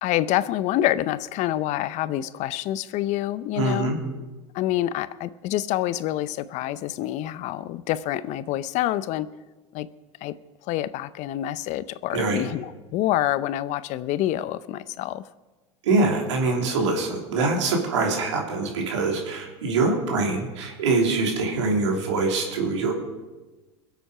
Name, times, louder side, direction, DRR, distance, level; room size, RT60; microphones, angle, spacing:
voice 1, 0.0-3.9 4.5-9.3 9.7-9.9 10.2-10.4 10.6-15.2, left 14 dB, 55° left, 16 dB, 0.6 m, -27 dB
voice 2, 3.6-4.0 12.1-12.4 15.8-22.9, right 3 dB, 85° right, 0 dB, 3.1 m, -24 dB
21.5 x 8.1 x 4.9 m, 1.2 s
hypercardioid pair, 90°, 15 cm